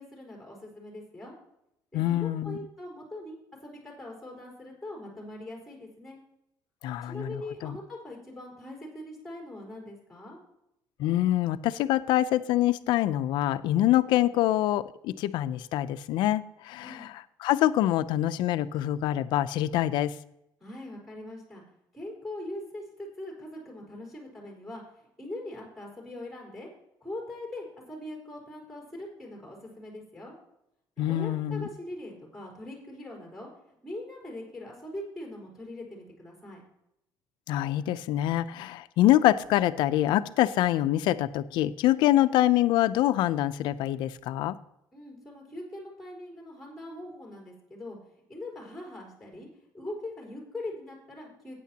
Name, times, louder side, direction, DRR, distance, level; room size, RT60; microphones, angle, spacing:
voice 1, 0.0-1.3 1.9-6.2 7.0-10.4 16.8-17.1 20.6-21.6 21.9-26.7 27.0-30.4 31.1-36.6 44.9-48.0 48.3-49.5 49.7-51.6, left 1 dB, ahead, -1 dB, 4.2 m, -41 dB
voice 2, 1.9-2.6 6.8-7.8 11.0-17.1 17.4-20.1 31.0-31.7 37.5-44.6, left 13 dB, 75° left, 13 dB, 0.6 m, -25 dB
14.5 x 9.3 x 2.9 m, 0.81 s
cardioid pair, 145°, 8 cm